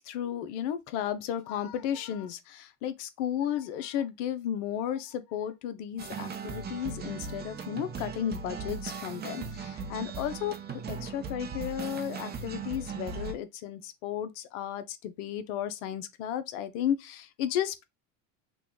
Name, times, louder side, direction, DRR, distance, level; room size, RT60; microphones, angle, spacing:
voice 1, 0.0-10.6 10.9-17.8, left 10 dB, 70° left, 0.6 m, -34 dB
sound 1, 6.0-13.3, right 5 dB, 25° right, 0.6 m, -38 dB
3.0 x 2.2 x 3.7 m
supercardioid pair, 105°, 38 cm